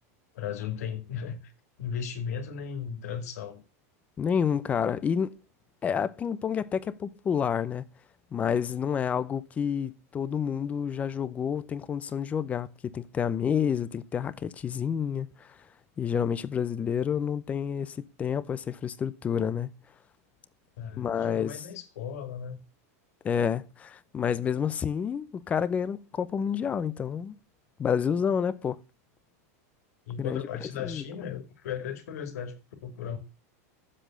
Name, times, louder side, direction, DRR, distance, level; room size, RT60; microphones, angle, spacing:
voice 1, 0.3-1.5 1.8-3.6 20.8-22.6 30.1-33.2, left 7 dB, 80° left, 2.5 m, -36 dB
voice 2, 4.2-5.3 5.8-7.8 8.3-15.5 16.0-19.7 21.0-21.6 23.2-27.4 27.8-28.8 30.2-30.4 30.8-31.0, left 7 dB, 15° left, 0.6 m, -29 dB
8.9 x 7.6 x 6.4 m
supercardioid pair, 160°, 8 cm